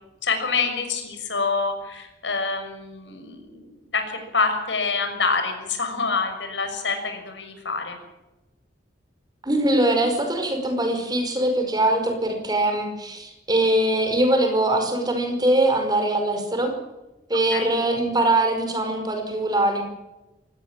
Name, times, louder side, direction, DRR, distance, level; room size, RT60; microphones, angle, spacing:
voice 1, 0.2-8.0 17.5-17.7, left 4 dB, 85° left, 6 dB, 6.5 m, -26 dB
voice 2, 9.4-16.7 17.3-19.8, right 1 dB, 20° right, 5 dB, 5.0 m, -22 dB
24.0 x 19.0 x 7.6 m, 1.0 s
head